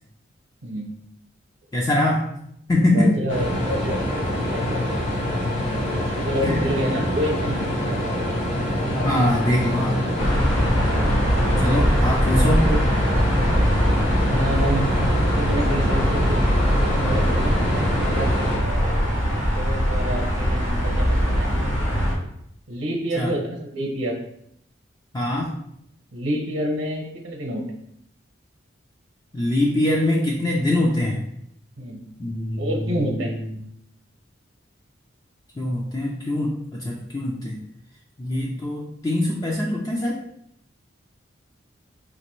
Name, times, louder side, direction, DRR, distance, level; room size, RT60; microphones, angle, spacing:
voice 1, 1.7-2.2 2.7-3.2 6.4-6.7 8.9-10.0 11.6-12.6 23.2-23.3 25.1-25.5 29.3-31.2 32.2-33.5 35.6-37.6 38.2-40.2, left 1 dB, 20° left, -3 dB, 0.3 m, -23 dB
voice 2, 2.8-5.0 5.9-8.2 8.9-9.3 10.8-12.8 14.3-16.4 16.8-18.3 18.5-19.1 19.5-21.5 22.7-24.2 26.1-27.6 31.8-32.0 32.6-33.4 38.3-38.5, equal, 75° right, 1 dB, 0.8 m, -29 dB
sound 1, 3.3-18.6, equal, 35° left, 0.8 m, -25 dB
sound 2, 10.2-22.1, equal, 85° left, 1.0 m, -22 dB
4.0 x 2.5 x 3.0 m, 0.72 s
head